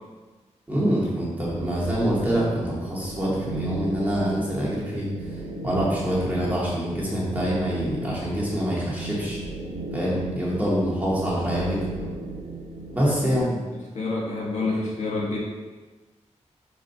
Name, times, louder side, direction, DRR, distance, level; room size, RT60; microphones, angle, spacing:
voice 1, 0.7-5.1 5.6-9.4 9.9-11.8 12.9-13.5, equal, 15° right, -7 dB, 2.1 m, -25 dB
sound 1, 1.4-13.4, right 2 dB, 85° right, 1.5 m, -35 dB
voice 2, 13.2-15.4, left 3 dB, 70° left, -4 dB, 1.7 m, -29 dB
5.1 x 5.0 x 5.8 m, 1.3 s
wide cardioid pair, 160°, 12 cm